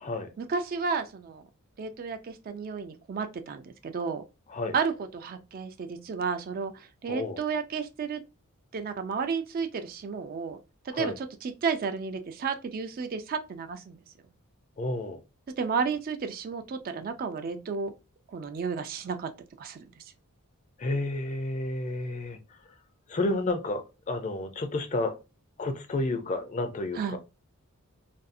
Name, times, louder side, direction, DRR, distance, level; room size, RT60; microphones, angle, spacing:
voice 1, 0.4-1.5 1.8-4.2 4.7-8.2 8.7-10.6 10.9-14.0 15.5-17.9 18.3-19.3 19.6-19.9 26.9-27.2, right 5 dB, 40° right, 0.3 m, -32 dB
voice 2, 7.1-7.4 10.9-11.1 14.8-15.2 20.8-22.4 23.1-25.2 25.6-27.2, left 2 dB, 35° left, 0.4 m, -31 dB
2.6 x 2.3 x 2.5 m
head